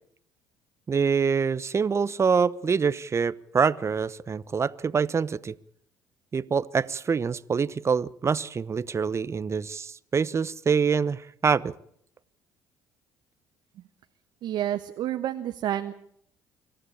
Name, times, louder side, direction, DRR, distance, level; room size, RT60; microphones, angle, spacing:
voice 1, 0.9-5.5 6.3-11.7, right 6 dB, 35° right, 19 dB, 1.0 m, -25 dB
voice 2, 14.4-15.9, right 12 dB, 60° right, 8 dB, 1.2 m, -29 dB
25.5 x 14.0 x 8.7 m, 0.68 s
hypercardioid pair, 65°, 8 cm